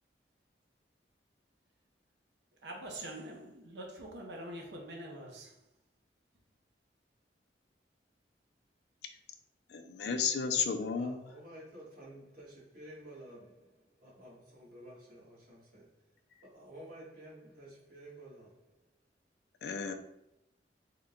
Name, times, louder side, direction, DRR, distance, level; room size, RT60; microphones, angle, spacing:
voice 1, 2.6-5.6, right 1 dB, 80° right, 0.8 m, -44 dB
voice 2, 9.7-11.2 19.6-19.9, left 6 dB, 70° left, 0.4 m, -33 dB
voice 3, 10.9-15.9 16.4-18.6, right 1 dB, 50° right, 1.5 m, -52 dB
3.7 x 2.2 x 3.5 m
head